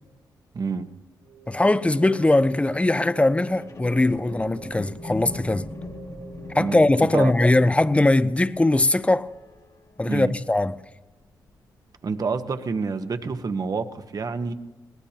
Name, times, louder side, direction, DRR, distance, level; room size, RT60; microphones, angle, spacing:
voice 1, 0.5-0.9 6.6-7.3 10.0-10.3 12.0-14.5, right 4 dB, 50° right, 1.2 m, -28 dB
sound 1, 1.2-8.4, right 5 dB, 80° right, 6.8 m, -45 dB
voice 2, 1.5-5.7 6.5-9.3 10.0-10.7, left 2 dB, 15° left, 0.7 m, -20 dB
sound 2, 3.4-10.9 11.4-11.5, left 2 dB, 50° left, 2.1 m, -42 dB
22.0 x 18.5 x 2.9 m
cardioid pair, 70°, 8 cm